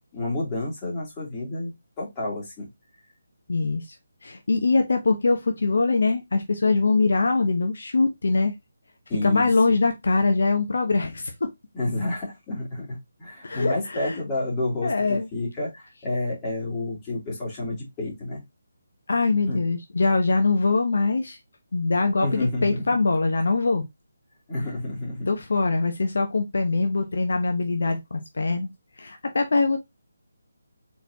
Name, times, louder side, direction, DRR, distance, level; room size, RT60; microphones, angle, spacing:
voice 1, 0.0-1.7 2.0-2.7 9.1-9.5 11.7-18.4 19.5-19.6 22.2-23.0 24.5-25.3, left 2 dB, 15° left, 2.6 m, -30 dB
voice 2, 3.5-3.8 4.2-8.5 9.2-11.5 13.4-14.2 14.8-15.3 19.1-21.4 21.7-23.8 25.3-28.7 29.0-29.8, left 3 dB, 70° left, 0.9 m, -23 dB
4.3 x 4.1 x 2.7 m
figure-of-eight pair, 160°, 0 cm